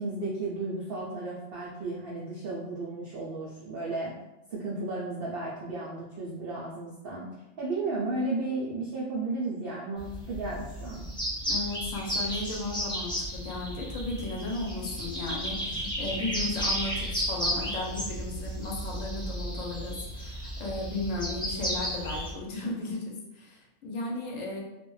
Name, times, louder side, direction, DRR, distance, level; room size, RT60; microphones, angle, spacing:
voice 1, 0.0-4.1 4.5-7.3 7.6-11.1, right 2 dB, 75° right, -5 dB, 0.5 m, -34 dB
sound 1, 10.0-22.3, equal, 5° left, 0.3 m, -33 dB
Car / Accelerating revving vroom, 10.9-20.1, left 1 dB, 25° left, 0.7 m, -47 dB
voice 2, 11.5-24.6, left 2 dB, 70° left, -2 dB, 0.9 m, -35 dB
2.4 x 2.1 x 3.0 m, 0.95 s
omnidirectional pair, 1.5 m